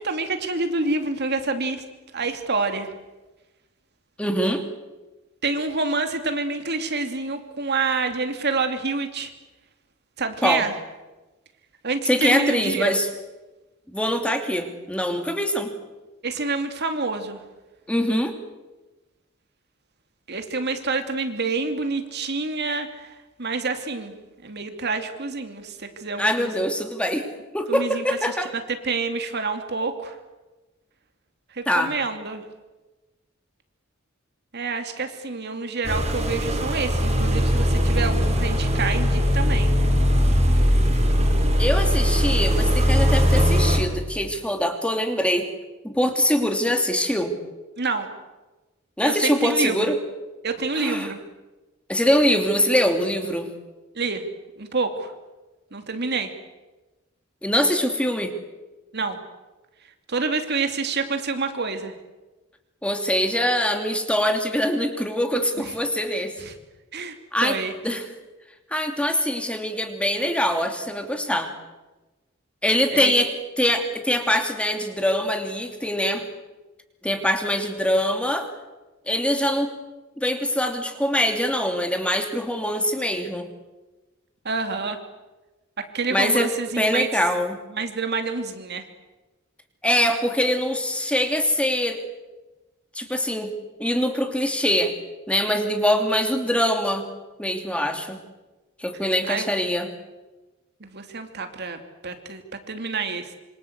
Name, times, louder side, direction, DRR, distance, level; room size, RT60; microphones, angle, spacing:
voice 1, 0.0-1.8 2.1-2.9 5.4-9.3 10.2-10.7 11.8-12.9 16.2-17.4 20.3-23.1 23.4-24.1 24.4-26.7 27.7-30.2 31.5-32.4 34.5-39.7 47.8-48.1 49.0-49.9 50.4-51.2 53.9-54.2 54.6-55.1 55.7-56.3 58.9-59.2 60.1-61.9 65.6-65.7 66.1-66.5 66.9-67.1 67.4-67.7 72.9-73.1 84.4-85.0 85.9-87.1 87.7-88.9 99.3-99.5 100.8-102.4 102.7-103.3, right 4 dB, 55° right, 7 dB, 2.7 m, -27 dB
voice 2, 4.2-4.6 10.4-10.6 12.1-13.1 13.9-15.7 17.9-18.4 26.2-27.3 27.5-28.5 31.7-31.9 41.6-45.5 45.8-47.4 49.0-49.9 50.8-51.1 51.9-53.5 57.4-58.3 62.8-66.3 67.3-67.6 67.8-68.1 68.7-71.5 72.6-73.3 73.6-76.2 77.0-78.5 79.1-79.7 80.2-83.5 86.1-86.5 86.8-87.6 89.8-92.0 92.9-93.5 93.8-94.9 95.3-97.1 97.4-98.2 98.8-99.9, equal, 5° left, 5 dB, 2.8 m, -23 dB
sound 1, 35.8-43.8, equal, 35° right, 4.7 m, -20 dB
26.5 x 25.0 x 8.2 m, 1.1 s
head